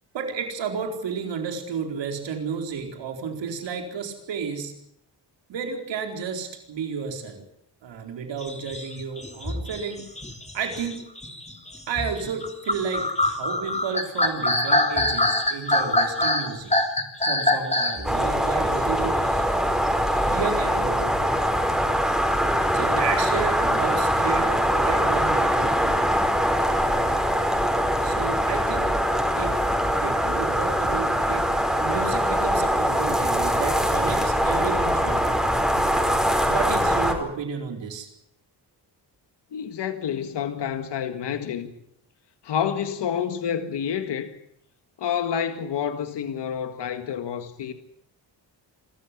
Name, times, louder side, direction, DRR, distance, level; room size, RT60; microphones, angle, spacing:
voice 1, 0.1-4.7 5.5-7.4 7.8-10.0 10.5-11.1 11.9-16.7 17.2-19.2 20.3-21.5 22.7-26.3 28.0-28.9 29.4-29.6 29.9-31.5 31.8-35.4 36.5-38.1, right 6 dB, 85° right, 4.5 m, -32 dB
sound 1, 8.4-18.1, left 2 dB, 15° left, 3.1 m, -24 dB
sound 2, 18.0-37.1, equal, ahead, 4.8 m, -23 dB
voice 2, 39.5-41.7 42.4-44.4 45.0-47.7, left 8 dB, 70° left, 1.9 m, -28 dB
25.5 x 14.5 x 9.8 m
cardioid pair, 105°, 43 cm